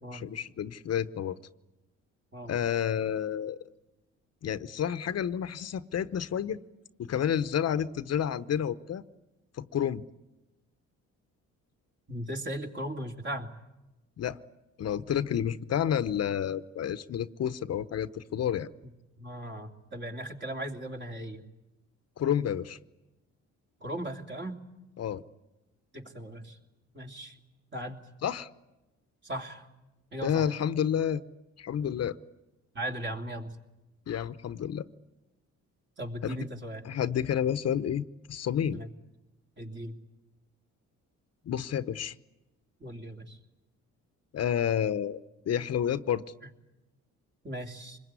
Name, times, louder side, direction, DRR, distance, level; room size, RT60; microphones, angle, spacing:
voice 1, 0.0-1.4 2.4-3.6 4.4-6.6 7.0-9.0 9.6-10.0 14.2-14.4 14.8-18.7 22.2-22.8 25.0-25.2 28.2-28.5 30.2-31.2 31.6-32.2 34.1-34.8 36.2-36.4 36.8-38.8 41.5-42.1 44.3-45.2 45.5-46.2, left 9 dB, 55° left, 13 dB, 0.9 m, -30 dB
voice 2, 12.1-13.5 18.8-18.9 19.2-21.4 23.8-24.6 25.9-26.6 26.9-27.4 27.7-28.0 29.2-29.7 30.1-30.5 32.7-33.6 36.0-36.8 38.7-38.9 39.6-40.0 42.8-43.4 47.4-48.0, right 1 dB, 40° right, 3 dB, 3.1 m, -37 dB
25.5 x 21.5 x 9.6 m, 1.0 s
cardioid pair, 90°, 30 cm